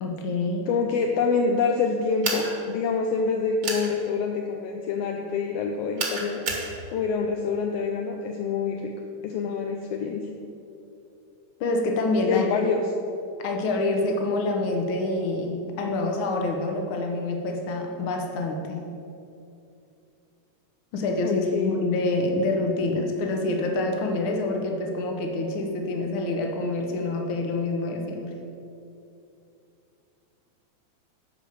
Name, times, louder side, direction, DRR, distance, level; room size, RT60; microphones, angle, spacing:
voice 1, 0.0-0.7 11.6-12.5 13.4-18.8 20.9-28.3, left 2 dB, 55° left, 2 dB, 1.6 m, -26 dB
voice 2, 0.7-6.4 6.9-8.9 9.2-10.3 12.2-12.8 21.2-21.8, left 5 dB, 75° left, 2 dB, 1.4 m, -26 dB
sound 1, 2.2-2.5 3.6-3.9 6.0-6.7, right 4 dB, 45° right, 1.8 m, -28 dB
11.5 x 4.8 x 6.9 m, 2.7 s
omnidirectional pair, 3.4 m